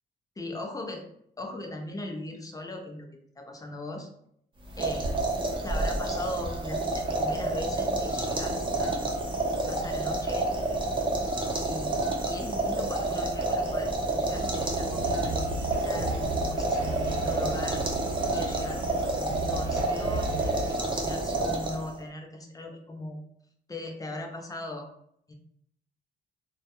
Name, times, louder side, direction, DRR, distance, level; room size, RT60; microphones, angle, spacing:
voice 1, 0.4-1.1 1.4-3.1 3.4-4.1 4.8-5.3 5.6-10.5 11.5-23.2 23.7-24.9 25.3-25.4, left 2 dB, 20° left, 3 dB, 0.5 m, -39 dB
sound 1, 4.6-22.0, right 2 dB, 25° right, 0.6 m, -29 dB
sound 2, 14.3-20.8, right 2 dB, 75° right, 0.5 m, -35 dB
2.3 x 2.1 x 2.8 m, 0.69 s
cardioid pair, 90°, 20 cm